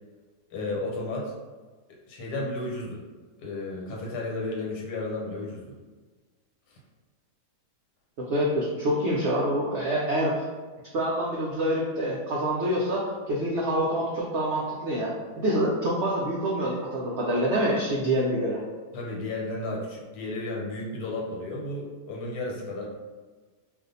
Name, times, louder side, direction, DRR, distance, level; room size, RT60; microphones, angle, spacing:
voice 1, 0.5-1.3 2.1-3.0 3.4-5.8 6.7-6.8 18.9-22.9, left 2 dB, 80° left, -2 dB, 1.4 m, -33 dB
voice 2, 8.2-10.4 10.9-18.6, right 1 dB, 75° right, -4 dB, 0.6 m, -26 dB
2.6 x 2.5 x 3.9 m, 1.4 s
omnidirectional pair, 1.8 m